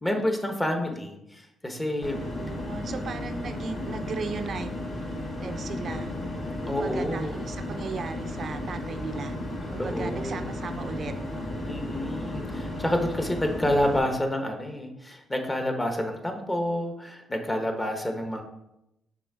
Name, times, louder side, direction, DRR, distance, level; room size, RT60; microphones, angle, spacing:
voice 1, 0.0-2.2 6.7-7.3 9.8-10.5 11.6-18.4, left 1 dB, 15° left, 4 dB, 1.1 m, -29 dB
sound 1, 2.0-14.0, left 1 dB, 40° left, 2.3 m, -34 dB
voice 2, 2.2-4.7 5.4-6.1 6.6-9.4 9.7-11.1, right 5 dB, 50° right, 9 dB, 0.6 m, -37 dB
6.1 x 3.6 x 4.7 m, 0.84 s
cardioid pair, 90°, 0 cm